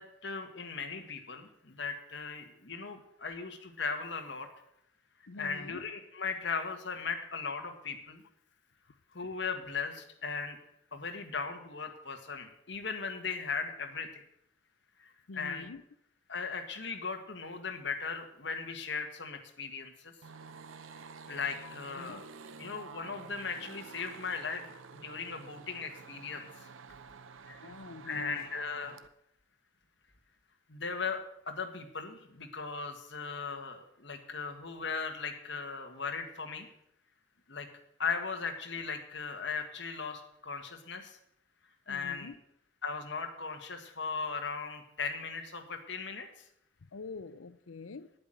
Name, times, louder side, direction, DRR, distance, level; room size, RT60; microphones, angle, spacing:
voice 1, 0.0-4.5 5.4-8.2 9.1-10.6 10.9-14.2 15.0-15.1 15.3-15.7 16.3-20.1 21.3-22.2 22.6-26.7 27.5-27.7 28.0-29.0 30.7-31.2 31.5-36.7 37.5-37.7 38.0-41.2 41.9-42.3 42.8-46.3, left 5 dB, 60° left, 6 dB, 1.7 m, -38 dB
voice 2, 5.3-5.8 15.3-15.8 21.3-22.2 27.6-28.5 41.9-42.4 46.9-48.1, left 4 dB, 90° left, 13 dB, 0.7 m, -46 dB
sound 1, 20.2-29.1, right 5 dB, 80° right, 0.8 m, -50 dB
10.5 x 8.6 x 7.7 m, 0.75 s
head